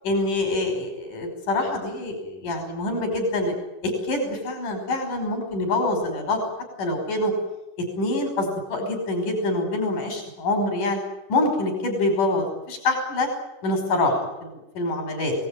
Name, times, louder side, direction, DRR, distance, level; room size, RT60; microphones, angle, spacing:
voice 1, 0.0-3.6 3.8-6.4 6.8-7.3 8.0-11.0 11.3-13.3 13.6-14.5 14.8-15.3, left 2 dB, 75° left, 4 dB, 7.0 m, -25 dB
28.5 x 19.0 x 9.2 m, 0.96 s
omnidirectional pair, 3.7 m